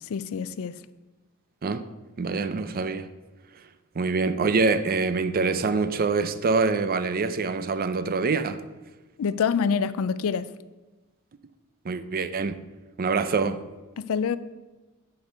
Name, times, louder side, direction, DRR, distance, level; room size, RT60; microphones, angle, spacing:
voice 1, 0.1-0.8 9.2-10.5 14.0-14.4, left 6 dB, 65° left, 0.4 m, -26 dB
voice 2, 2.2-3.1 4.0-8.6 11.8-12.6 13.0-13.6, right 4 dB, 40° right, 0.5 m, -25 dB
8.2 x 4.6 x 6.7 m
head